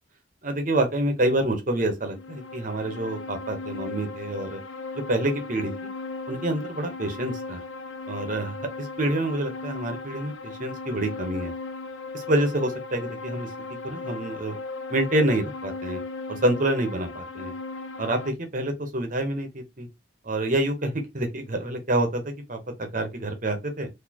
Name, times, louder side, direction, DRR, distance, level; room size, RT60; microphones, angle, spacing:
voice 1, 0.4-4.6 4.9-5.9 6.3-7.6 8.1-11.5 12.1-13.5 13.8-14.6 14.9-16.0 16.3-17.5 18.0-19.9 20.2-23.9, right 1 dB, 40° right, 0.9 m, -27 dB
sound 1, 2.0-18.3, left 3 dB, 75° left, 0.5 m, -37 dB
4.1 x 2.7 x 2.8 m
head